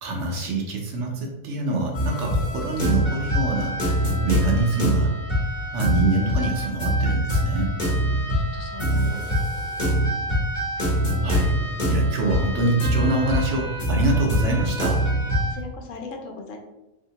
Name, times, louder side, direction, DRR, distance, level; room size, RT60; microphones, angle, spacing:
voice 1, 0.0-5.1 5.7-7.7 11.2-11.5 11.9-15.0, right 2 dB, 65° right, 0 dB, 0.9 m, -25 dB
sound 1, 1.9-15.5, equal, 35° left, 0.9 m, -24 dB
voice 2, 8.3-9.3 15.5-16.6, left 3 dB, 70° left, 3 dB, 0.9 m, -38 dB
3.6 x 2.7 x 2.8 m, 0.96 s
omnidirectional pair, 1.5 m